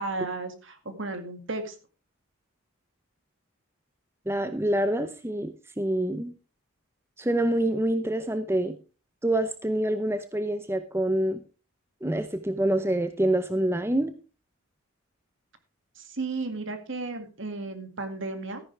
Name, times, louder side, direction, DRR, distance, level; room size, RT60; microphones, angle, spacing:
voice 1, 0.0-1.7 16.0-18.6, right 3 dB, 60° right, 8 dB, 2.2 m, -34 dB
voice 2, 4.3-6.3 7.2-8.8 9.2-11.4 12.0-14.1, right 1 dB, 10° right, 10 dB, 0.7 m, -26 dB
14.0 x 10.5 x 3.3 m, 0.34 s
head